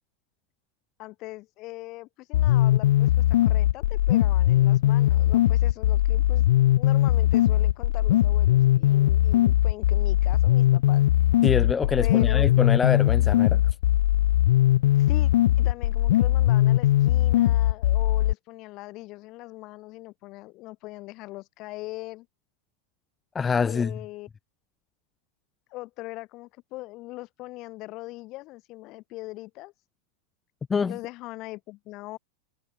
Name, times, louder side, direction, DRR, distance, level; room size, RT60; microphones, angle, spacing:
voice 1, 1.0-6.4 6.8-11.0 12.0-12.6 15.0-15.3 15.6-22.3 23.6-24.3 25.7-29.7 30.9-32.2, left 20 dB, 40° left, 5.6 m, -40 dB
sound 1, 2.3-18.3, left 14 dB, 55° left, 1.6 m, -20 dB
voice 2, 11.4-13.6 23.3-23.9 30.7-30.9, left 5 dB, 15° left, 1.5 m, -25 dB
figure-of-eight pair, 90°, 0 cm